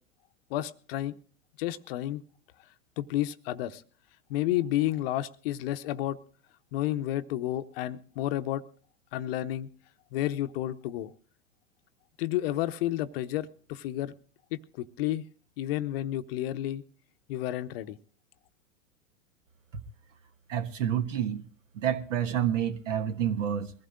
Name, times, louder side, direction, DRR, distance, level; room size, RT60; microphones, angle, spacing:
voice 1, 0.5-1.2 1.6-2.2 3.0-3.8 4.3-6.2 6.7-8.6 9.1-9.7 10.1-11.1 12.2-14.1 14.5-15.2 15.6-16.8 17.3-18.0, left 13 dB, 45° left, 0.7 m, -31 dB
voice 2, 20.5-21.4 21.7-23.7, right 9 dB, 60° right, 1.4 m, -28 dB
22.0 x 15.5 x 2.5 m
figure-of-eight pair, 100°, 41 cm